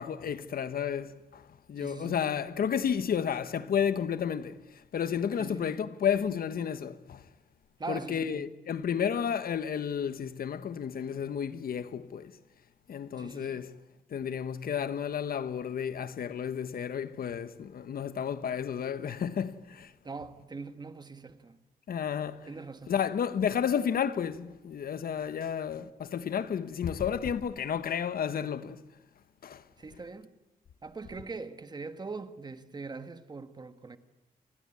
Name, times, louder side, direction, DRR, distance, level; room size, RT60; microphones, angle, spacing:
voice 1, 0.0-7.2 7.9-12.3 12.9-13.8 14.1-19.9 21.9-22.5 22.9-28.8 29.4-29.6, left 8 dB, 75° left, 1.3 m, -32 dB
voice 2, 1.8-2.3 5.4-5.7 7.8-8.6 13.2-13.7 20.0-21.6 22.5-22.9 29.8-30.3 30.8-34.0, right 4 dB, 25° right, 1.5 m, -42 dB
29.0 x 20.5 x 9.9 m
wide cardioid pair, 165°, 15 cm